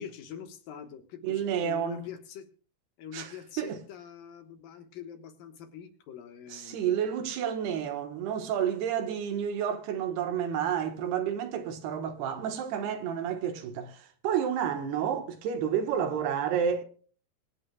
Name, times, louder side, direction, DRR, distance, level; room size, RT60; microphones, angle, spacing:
voice 1, 0.0-2.5 3.0-6.8, left 8 dB, 65° left, 2.8 m, -44 dB
voice 2, 1.2-2.0 3.1-3.8 6.5-16.8, right 8 dB, 80° right, 3.2 m, -30 dB
25.5 x 8.5 x 2.3 m
omnidirectional pair, 4.7 m